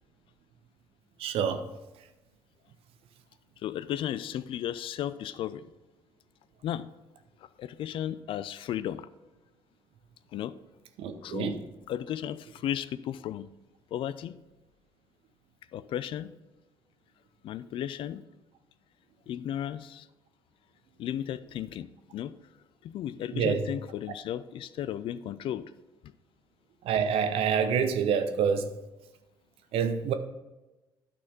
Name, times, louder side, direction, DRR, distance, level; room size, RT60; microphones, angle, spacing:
voice 1, 1.2-1.7 11.0-11.6 23.3-23.7 26.8-28.7 29.7-30.1, right 7 dB, 55° right, 0.8 m, -27 dB
voice 2, 3.6-5.7 6.6-6.9 7.4-9.1 10.3-10.5 11.2-11.6 11.9-13.5 13.9-14.4 15.7-16.3 17.4-18.2 19.3-20.1 21.0-22.3 22.8-25.7, left 11 dB, 50° left, 0.4 m, -34 dB
12.0 x 4.2 x 5.2 m
figure-of-eight pair, 50°, 11 cm